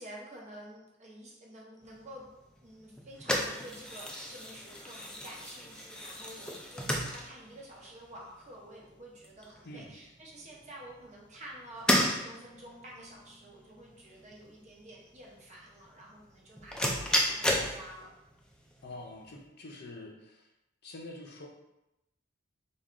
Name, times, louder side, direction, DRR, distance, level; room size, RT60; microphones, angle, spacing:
voice 1, 0.0-2.3 2.6-18.1, right 1 dB, 35° right, -2 dB, 0.8 m, -49 dB
sound 1, 1.8-19.5, left 1 dB, 5° left, 0.3 m, -34 dB
voice 2, 9.6-9.9 18.8-20.5 20.8-21.5, left 2 dB, 55° left, 0 dB, 0.6 m, -46 dB
3.5 x 2.3 x 3.6 m, 0.89 s
head